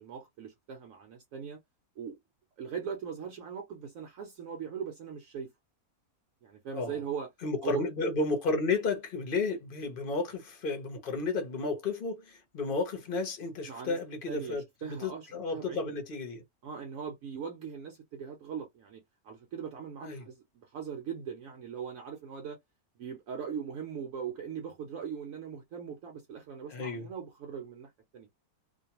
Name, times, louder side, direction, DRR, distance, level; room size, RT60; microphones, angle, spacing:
voice 1, 0.0-1.6 2.0-2.2 2.6-5.5 6.4-7.3 7.6-7.9 13.7-14.0 14.3-15.9 16.6-22.6 23.0-28.3, right 7 dB, 70° right, 1.0 m, -40 dB
voice 2, 7.4-16.4 20.0-20.3 26.7-27.1, left 3 dB, 45° left, 0.8 m, -32 dB
2.5 x 2.1 x 2.8 m
omnidirectional pair, 1.6 m